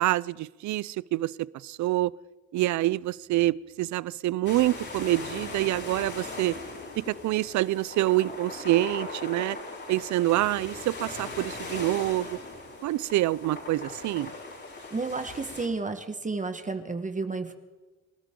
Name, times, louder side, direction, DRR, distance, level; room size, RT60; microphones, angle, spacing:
voice 1, 0.0-2.1 2.5-6.6 7.1-9.6 9.9-12.4 12.8-14.3, right 16 dB, 70° right, 22 dB, 0.5 m, -26 dB
sound 1, 4.5-15.7, left 3 dB, 40° left, 5.3 m, -39 dB
voice 2, 14.9-17.5, right 3 dB, 25° right, 8 dB, 1.3 m, -31 dB
27.0 x 13.0 x 3.8 m, 1.3 s
cardioid pair, 90°, 30 cm